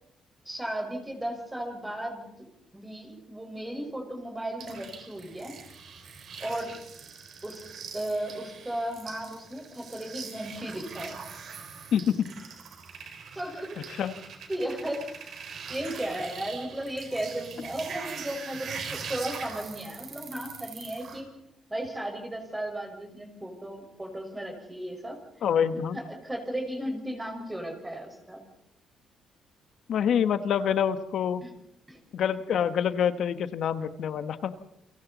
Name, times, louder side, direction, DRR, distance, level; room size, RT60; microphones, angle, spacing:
voice 1, 0.5-2.3 2.7-5.6 6.4-6.8 7.4-7.7 7.9-11.2 13.3-13.8 14.5-15.1 15.7-21.3 21.7-25.2 25.9-28.4 31.4-31.5 31.9-32.0, right 1 dB, 15° right, 2 dB, 5.3 m, -35 dB
sound 1, 4.6-21.2, right 6 dB, 60° right, 4.6 m, -42 dB
voice 2, 11.9-12.3 14.0-14.1 25.4-26.0 29.9-31.4 32.1-34.5, left 8 dB, 70° left, 11 dB, 1.3 m, -26 dB
30.0 x 23.5 x 4.2 m, 0.84 s
cardioid pair, 90°, 0 cm